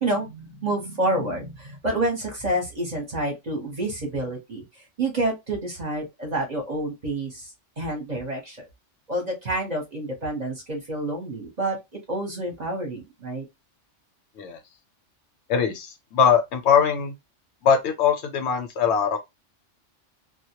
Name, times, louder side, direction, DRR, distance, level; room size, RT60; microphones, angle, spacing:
voice 1, 0.0-7.5 7.8-8.7 9.1-13.4, right 1 dB, 40° right, 0.8 m, -28 dB
voice 2, 15.5-17.1 17.6-19.2, left 7 dB, 70° left, 0.8 m, -21 dB
2.2 x 2.1 x 2.7 m
omnidirectional pair, 1.3 m